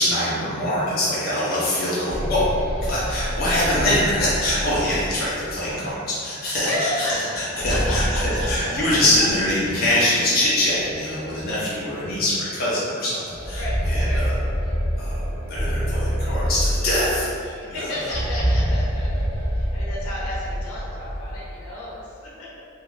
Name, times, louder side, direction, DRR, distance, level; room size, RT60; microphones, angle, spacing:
voice 1, 0.0-2.5 2.8-14.4 14.9-18.1, left 1 dB, 45° left, -8 dB, 0.5 m, -24 dB
sound 1, 1.8-5.5 7.3-9.5 9.8-9.9 10.8-10.9 11.4-11.5 13.1-17.3 18.0-21.4, equal, 15° right, 0.8 m, -26 dB
voice 2, 6.7-7.3 7.5-8.7 13.5-13.8 14.0-14.2 17.6-19.1 19.5-22.6, left 1 dB, 85° left, -7 dB, 0.8 m, -32 dB
2.5 x 2.2 x 3.1 m, 2.3 s
head